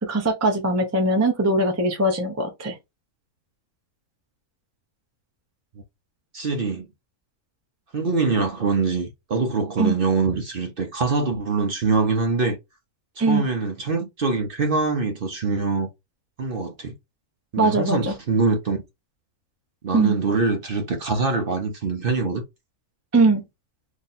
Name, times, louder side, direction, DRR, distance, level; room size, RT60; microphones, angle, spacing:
voice 1, 0.0-2.8 9.8-10.0 13.2-13.4 17.6-18.1 19.9-20.2 23.1-23.4, right 2 dB, 20° right, 0.4 m, -21 dB
voice 2, 6.3-6.9 7.9-12.6 13.2-15.9 16.4-16.9 17.5-18.8 19.8-22.4, right 4 dB, 45° right, 0.8 m, -24 dB
3.0 x 2.6 x 4.1 m
omnidirectional pair, 1.6 m